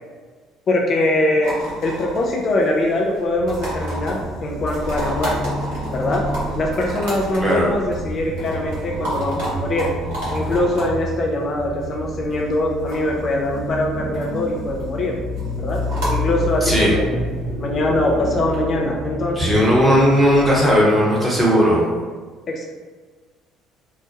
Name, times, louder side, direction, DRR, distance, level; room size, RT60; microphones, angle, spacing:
voice 1, 0.7-1.5 1.8-5.6 5.9-6.2 6.6-9.9 10.3-15.2 15.6-15.8 16.1-17.2 17.6-19.6 22.5-22.6, left 1 dB, 45° left, -1 dB, 0.4 m, -22 dB
sound 1, 1.4-18.6, right 1 dB, 65° right, 1.1 m, -32 dB
The evil, 3.4-20.7, left 1 dB, 40° right, 0.6 m, -29 dB
voice 2, 16.6-16.9 19.4-21.9, equal, 15° right, -5 dB, 1.0 m, -16 dB
2.8 x 2.1 x 2.7 m, 1.4 s
hypercardioid pair, 55°, 0 cm